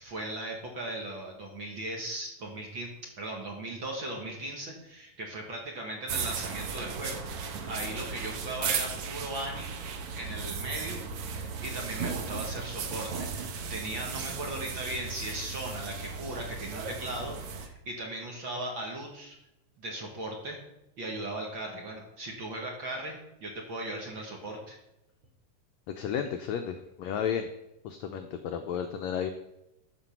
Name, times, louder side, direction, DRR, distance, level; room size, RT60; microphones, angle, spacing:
voice 1, 0.0-2.9 3.2-9.7 10.2-11.0 11.3-19.4 19.8-20.6 21.0-24.8, right 1 dB, 45° right, 0 dB, 1.8 m, -38 dB
sound 1, 6.1-17.7, right 5 dB, 70° right, 1.4 m, -36 dB
voice 2, 26.0-27.5 27.8-29.3, left 8 dB, 85° left, 7 dB, 1.5 m, -32 dB
13.5 x 5.4 x 5.8 m, 0.90 s
omnidirectional pair, 4.0 m